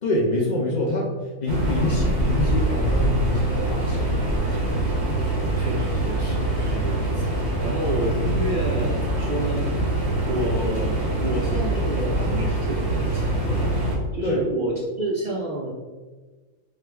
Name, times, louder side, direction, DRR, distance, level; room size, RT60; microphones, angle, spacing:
voice 1, 0.0-1.1 1.4-4.8 14.2-14.4, left 1 dB, 75° left, -2 dB, 0.4 m, -26 dB
sound 1, 1.5-14.0, right 1 dB, 50° right, 1.4 m, -24 dB
voice 2, 5.6-7.3 7.6-9.6 10.2-13.7 14.1-15.7, right 1 dB, 70° right, -3 dB, 0.5 m, -29 dB
3.5 x 3.1 x 3.4 m, 1.3 s
omnidirectional pair, 1.6 m